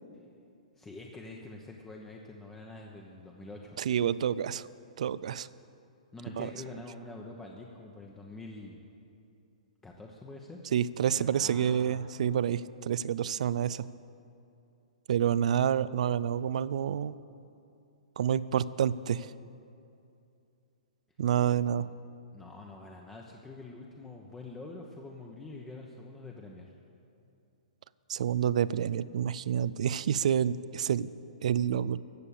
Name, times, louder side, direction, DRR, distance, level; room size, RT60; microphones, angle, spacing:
voice 1, 0.8-3.8 6.1-8.8 9.8-10.6 11.2-12.1 21.8-21.9 22.3-26.7, left 2 dB, 10° left, 0 dB, 1.0 m, -46 dB
voice 2, 3.8-4.7 5.0-5.5 6.4-6.5 10.7-13.9 15.1-17.2 18.2-19.3 21.2-21.9 28.1-31.1 31.4-32.0, right 9 dB, 65° right, 18 dB, 0.4 m, -28 dB
15.0 x 6.7 x 8.5 m, 2.6 s
hypercardioid pair, 125°, 4 cm